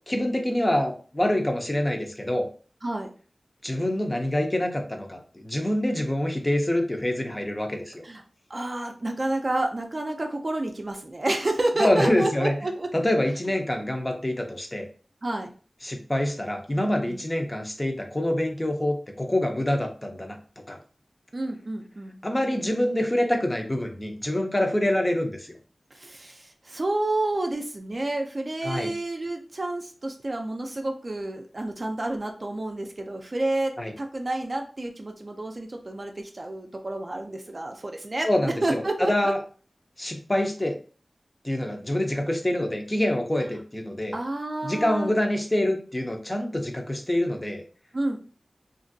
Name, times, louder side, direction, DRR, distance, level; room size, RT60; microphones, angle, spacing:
voice 1, 0.1-2.5 3.6-8.0 11.8-12.5 12.9-14.9 15.8-20.4 20.7-20.8 22.2-25.5 28.6-28.9 33.8-33.9 38.2-39.4 40.0-40.8 41.4-44.2 44.6-47.6, left 1 dB, 25° left, 3 dB, 0.6 m, -26 dB
voice 2, 2.8-3.1 8.0-8.2 8.5-12.9 15.2-15.5 17.0-17.2 21.3-22.2 25.9-38.3 38.6-39.3 44.1-45.1 47.9-48.2, right 2 dB, 45° right, 3 dB, 0.4 m, -29 dB
2.9 x 2.5 x 2.6 m, 0.40 s
wide cardioid pair, 70°, 0 cm